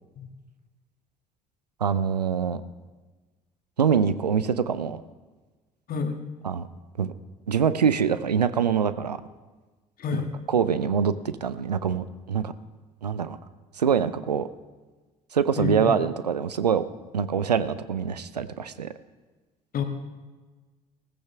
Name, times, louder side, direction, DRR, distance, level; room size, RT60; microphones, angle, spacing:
voice 1, 1.8-2.6 3.8-5.0 6.4-6.7 7.0-7.1 7.5-9.2 10.5-11.1 11.4-12.5 13.0-13.4 13.7-14.5 15.3-16.8 17.1-18.9, right 7 dB, 90° right, 14 dB, 0.5 m, -24 dB
voice 2, 10.0-10.3 15.6-16.0 19.7-19.8, left 5 dB, 45° left, 4 dB, 1.7 m, -28 dB
16.0 x 15.0 x 3.4 m, 1.3 s
figure-of-eight pair, 55°, 20 cm